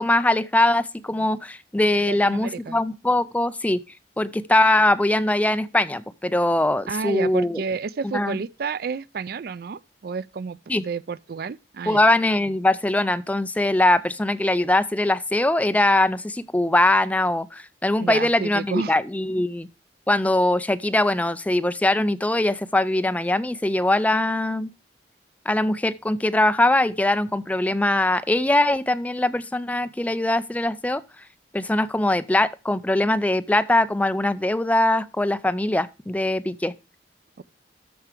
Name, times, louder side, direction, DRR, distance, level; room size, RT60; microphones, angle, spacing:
voice 1, 0.0-3.8 4.2-7.6 8.1-8.4 10.7-10.8 11.9-19.7 20.1-24.7 25.5-31.0 31.5-36.7, left 1 dB, 10° left, 0.4 m, -22 dB
voice 2, 1.9-2.8 6.9-12.0 18.0-19.0 37.4-37.5, right 5 dB, 60° right, 0.4 m, -30 dB
13.0 x 4.7 x 5.0 m
head